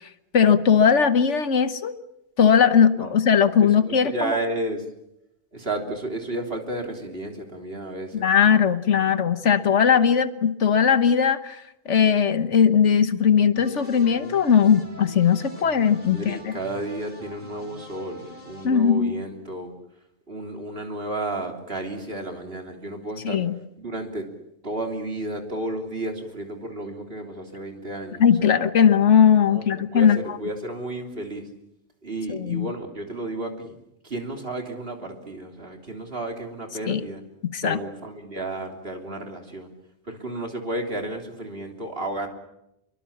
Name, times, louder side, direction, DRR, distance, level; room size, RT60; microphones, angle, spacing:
voice 1, 0.3-1.9 2.4-4.4 8.1-16.5 18.6-19.1 23.2-23.5 28.2-30.2 32.3-32.7 36.9-37.0 37.5-37.8, left 7 dB, 75° left, 11 dB, 1.5 m, -19 dB
voice 2, 3.6-4.8 5.5-8.3 16.0-19.7 20.3-23.4 23.8-24.3 24.6-28.5 29.4-31.5 32.0-33.8 34.0-37.2 37.6-39.7 40.1-42.3, right 1 dB, 55° right, 3 dB, 3.6 m, -32 dB
sound 1, 13.5-18.7, left 1 dB, 40° left, 4.0 m, -44 dB
26.5 x 23.0 x 7.2 m, 0.84 s
omnidirectional pair, 1.2 m